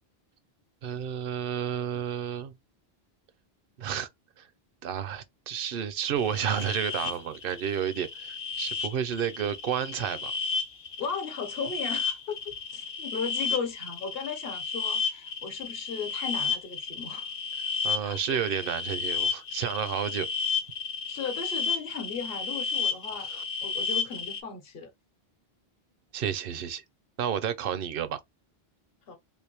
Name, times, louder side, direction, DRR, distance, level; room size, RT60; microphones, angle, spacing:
voice 1, 0.8-2.5 3.8-4.1 4.4-4.5 4.8-10.3 17.5-20.3 23.2-23.4 26.1-26.8 27.2-28.2, right 8 dB, 65° right, 0.7 m, -31 dB
sound 1, 6.2-24.4, left 5 dB, 35° left, 0.6 m, -33 dB
voice 2, 11.0-12.4 12.7-17.3 18.0-18.4 21.1-23.3 23.6-24.9 29.1-29.2, left 5 dB, 65° left, 1.1 m, -36 dB
3.5 x 2.6 x 3.0 m
omnidirectional pair, 1.1 m